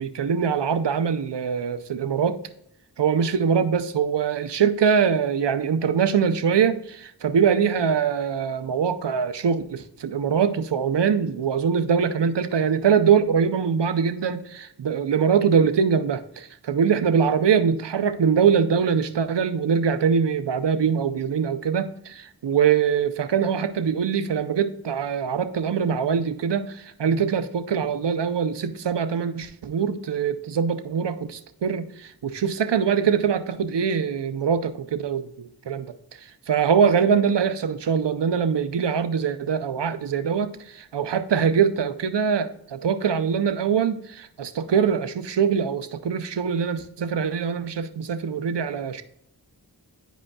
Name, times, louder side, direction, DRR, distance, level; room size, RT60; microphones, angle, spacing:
voice 1, 0.0-2.4 3.0-35.9 36.5-49.0, right 7 dB, 90° right, 10 dB, 0.6 m, -23 dB
9.7 x 5.1 x 2.2 m, 0.72 s
wide cardioid pair, 40°, 41 cm